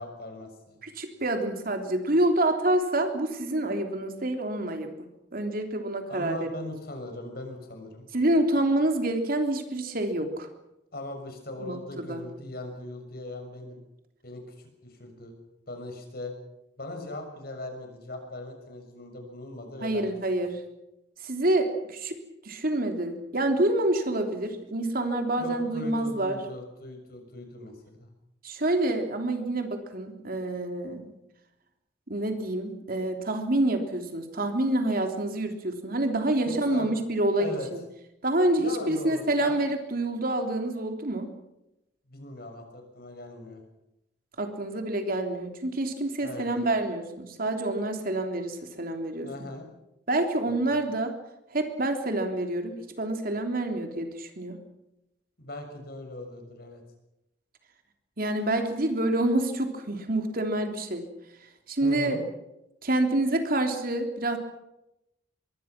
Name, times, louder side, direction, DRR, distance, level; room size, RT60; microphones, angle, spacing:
voice 1, 0.0-0.8 6.1-8.0 10.9-13.8 14.2-14.4 14.8-15.3 15.7-16.3 16.8-20.1 25.4-28.1 36.5-37.0 37.4-37.7 38.6-39.6 42.1-43.6 46.2-46.5 49.2-49.7 50.5-50.6 55.4-56.8 61.8-62.2, left 1 dB, 55° left, 4 dB, 6.7 m, -39 dB
voice 2, 0.8-4.9 5.3-6.4 8.1-10.5 11.6-12.2 19.8-20.6 21.2-22.2 22.4-26.4 28.4-31.1 32.1-37.8 38.2-41.3 44.4-49.3 50.1-51.1 51.5-54.6 58.2-61.1 61.7-62.2 62.8-64.4, right 1 dB, 50° right, 5 dB, 3.3 m, -27 dB
25.5 x 22.5 x 6.1 m, 0.88 s
head